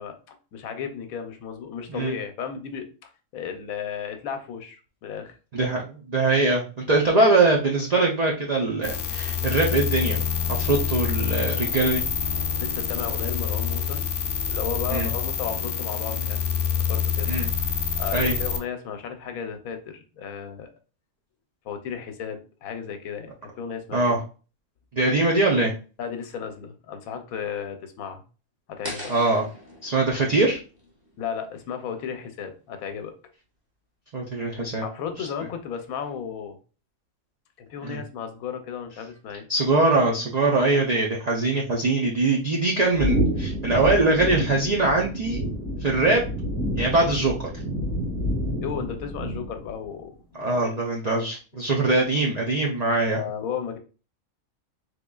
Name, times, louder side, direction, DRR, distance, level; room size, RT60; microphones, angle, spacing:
voice 1, 0.0-5.4 12.6-14.0 14.5-16.4 16.9-17.3 17.6-20.7 21.6-24.2 26.0-28.2 28.7-29.1 31.2-33.1 34.8-36.6 37.6-39.5 48.6-50.8 53.1-53.8, left 7 dB, 85° left, 7 dB, 1.0 m, -34 dB
voice 2, 5.5-10.2 10.5-12.0 14.9-15.1 17.3-17.5 18.1-18.3 23.9-24.2 24.9-25.7 29.1-29.5 29.8-30.6 34.1-34.8 37.8-38.0 39.5-45.4 45.8-46.2 46.8-47.5 50.4-53.2, right 2 dB, 80° right, -2 dB, 0.3 m, -22 dB
sound 1, 8.8-18.6, left 7 dB, 65° left, 0.5 m, -27 dB
sound 2, 28.8-31.9, equal, 20° right, 0.6 m, -41 dB
sound 3, 43.0-49.7, equal, 60° right, 2.2 m, -28 dB
3.6 x 3.3 x 2.3 m, 0.35 s
omnidirectional pair, 1.5 m